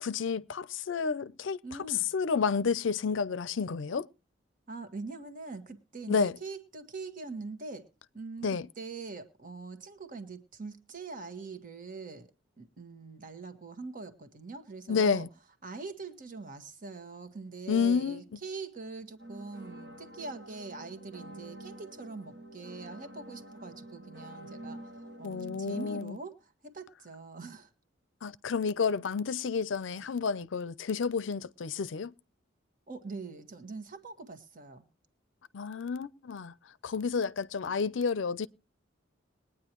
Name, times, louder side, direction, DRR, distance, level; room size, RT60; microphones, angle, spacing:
voice 1, 0.0-1.6 2.1-4.1 6.1-6.3 8.4-8.7 14.9-15.3 17.7-18.2 25.2-26.2 28.2-32.1 35.5-36.5 36.8-38.5, left 5 dB, 70° left, 0.5 m, -30 dB
voice 2, 1.6-2.0 4.7-7.9 8.1-12.3 12.6-15.2 15.6-24.8 25.2-27.7 32.9-34.8, right 3 dB, 45° right, 1.5 m, -43 dB
sound 1, 19.2-26.0, right 1 dB, 65° right, 1.6 m, -47 dB
21.5 x 9.5 x 3.0 m
head